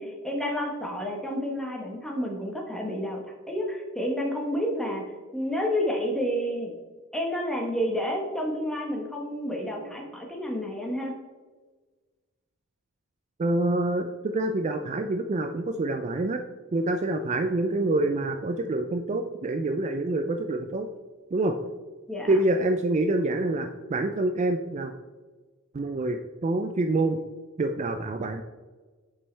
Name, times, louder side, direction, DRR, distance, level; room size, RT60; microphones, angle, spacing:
voice 1, 0.0-5.0 5.3-6.7 7.1-11.1 22.1-22.3, equal, 5° left, 0 dB, 1.1 m, -30 dB
voice 2, 13.4-16.4 16.7-20.9 21.3-21.5 22.3-24.9 25.7-27.2 27.6-28.4, right 2 dB, 35° right, 6 dB, 0.4 m, -26 dB
8.2 x 5.4 x 3.3 m, 1.3 s
head